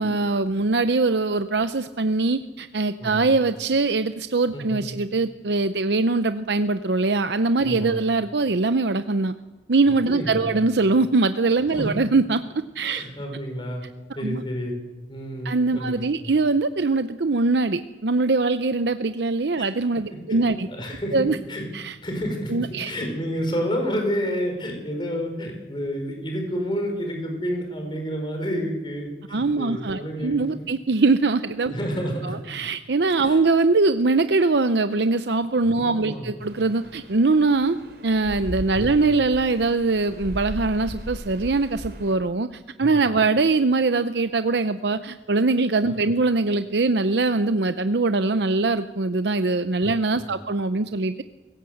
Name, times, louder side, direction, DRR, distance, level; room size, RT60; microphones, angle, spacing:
voice 1, 0.0-9.3 9.7-12.4 12.8-13.0 14.2-14.4 15.4-20.7 21.1-21.4 21.7-21.9 22.5-22.9 29.3-31.7 32.2-37.8 38.0-51.2, right 3 dB, 85° right, 10 dB, 0.7 m, -22 dB
voice 2, 3.0-3.4 4.5-4.9 7.6-8.0 10.1-10.6 11.7-11.9 12.9-13.8 14.1-14.7 15.1-16.3 19.6-19.7 20.3-21.6 22.0-30.3 31.7-32.3 33.2-33.4 35.7-36.4 38.7-39.1 42.8-43.1 49.9-50.0 50.3-50.4, equal, 25° left, 3 dB, 5.0 m, -30 dB
sound 1, 36.4-42.2, equal, 65° right, 3.2 m, -37 dB
26.0 x 17.0 x 7.9 m, 1.2 s
head